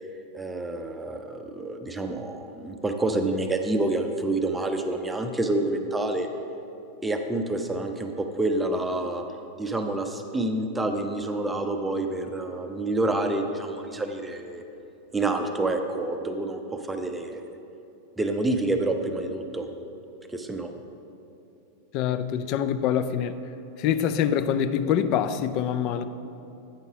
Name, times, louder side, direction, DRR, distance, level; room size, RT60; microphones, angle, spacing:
voice 1, 0.3-6.3 7.0-9.2 9.6-14.6 15.1-17.4 18.2-19.7 20.3-20.7, right 2 dB, 10° right, 5 dB, 0.5 m, -28 dB
voice 2, 21.9-23.4 23.8-26.0, left 9 dB, 40° left, 11 dB, 0.4 m, -25 dB
8.9 x 5.4 x 4.9 m, 2.8 s
figure-of-eight pair, 90°, 0 cm